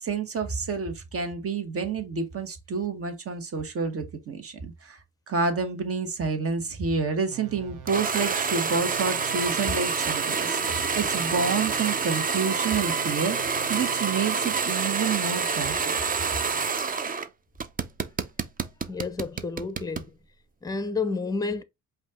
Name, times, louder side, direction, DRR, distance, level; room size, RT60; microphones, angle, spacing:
voice 1, 0.0-5.0 5.3-15.9, right 5 dB, 50° right, 1.4 m, -29 dB
sound 1, 7.3-14.9, right 7 dB, 90° right, 0.9 m, -46 dB
sound 2, 7.9-17.3 17.6-20.1, right 5 dB, 30° right, 0.6 m, -27 dB
voice 2, 18.9-20.1 20.6-21.6, left 4 dB, 10° left, 0.6 m, -30 dB
5.1 x 2.7 x 3.6 m
cardioid pair, 90°, 30 cm